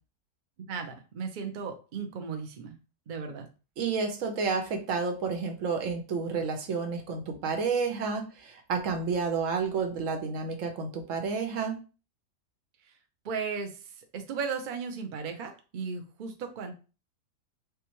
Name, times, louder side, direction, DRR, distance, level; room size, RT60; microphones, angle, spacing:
voice 1, 0.7-2.8 3.1-3.5 12.8-12.9 13.2-16.7, right 5 dB, 85° right, 5 dB, 0.4 m, -36 dB
voice 2, 3.8-11.8, right 5 dB, 60° right, 4 dB, 1.0 m, -30 dB
4.8 x 2.2 x 3.0 m, 0.33 s
omnidirectional pair, 1.8 m